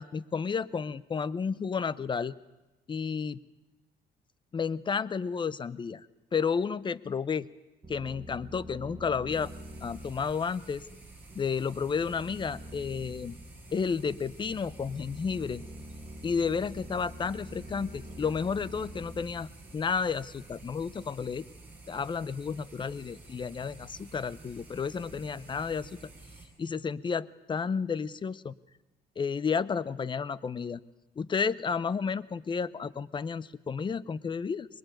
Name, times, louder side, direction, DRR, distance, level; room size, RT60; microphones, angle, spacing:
voice 1, 0.0-2.3 2.9-3.4 4.5-6.1 6.3-7.5 7.9-9.5 9.8-10.9 11.3-13.4 13.7-15.6 16.2-21.4 21.9-25.9 26.6-28.5 29.2-30.8 31.2-34.7, left 6 dB, 30° left, 19 dB, 0.8 m, -32 dB
sound 1, 7.8-20.3, right 1 dB, 25° right, 2.0 m, -47 dB
sound 2, 9.3-26.5, right 2 dB, 10° right, 6.8 m, -51 dB
22.5 x 21.5 x 9.2 m, 1.1 s
cardioid pair, 110°, 17 cm